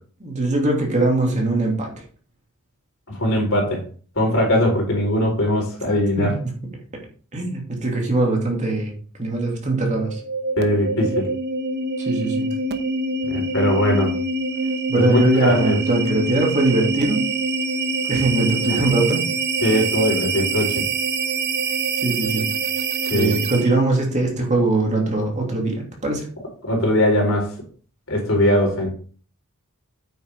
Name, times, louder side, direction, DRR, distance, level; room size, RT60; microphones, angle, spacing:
voice 1, 0.2-1.9 6.2-6.3 7.3-8.9 9.2-10.2 12.0-12.5 14.9-17.2 18.1-19.2 22.0-22.4 23.1-26.2, right 2 dB, 35° right, 0 dB, 2.7 m, -21 dB
voice 2, 3.2-3.8 4.2-6.3 10.6-11.3 13.3-14.1 15.0-15.8 18.7-18.8 19.6-20.8 23.1-23.4 26.6-27.5 28.1-28.9, left 1 dB, 65° left, 0 dB, 4.6 m, -20 dB
sound 1, 9.9-23.9, right 3 dB, 50° right, 1.0 m, -25 dB
9.0 x 7.4 x 3.6 m, 0.41 s
head